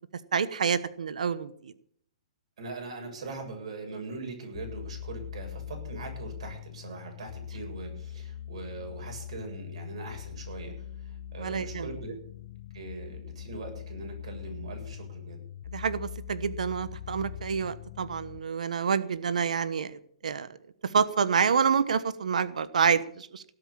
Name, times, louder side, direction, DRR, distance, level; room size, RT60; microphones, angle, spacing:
voice 1, 0.3-1.7 11.4-11.9 15.7-20.5 20.8-23.4, right 6 dB, 85° right, 14 dB, 1.1 m, -28 dB
voice 2, 2.6-12.2 12.7-15.4, right 3 dB, 55° right, 3 dB, 7.5 m, -41 dB
sound 1, 4.5-18.4, left 10 dB, 40° left, 0.6 m, -41 dB
17.5 x 8.0 x 8.8 m, 0.63 s
hypercardioid pair, 175°, 4 cm